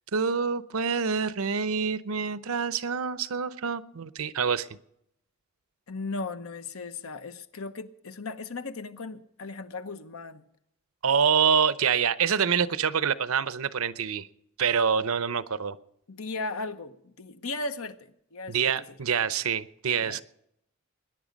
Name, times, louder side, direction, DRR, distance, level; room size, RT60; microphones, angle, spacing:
voice 1, 0.1-4.7 11.0-14.3 14.6-15.8 18.5-20.2, right 6 dB, 85° right, 14 dB, 0.7 m, -26 dB
voice 2, 5.9-10.4 16.1-18.7 19.9-20.2, left 3 dB, 85° left, 10 dB, 1.0 m, -37 dB
21.0 x 10.5 x 5.2 m, 0.75 s
head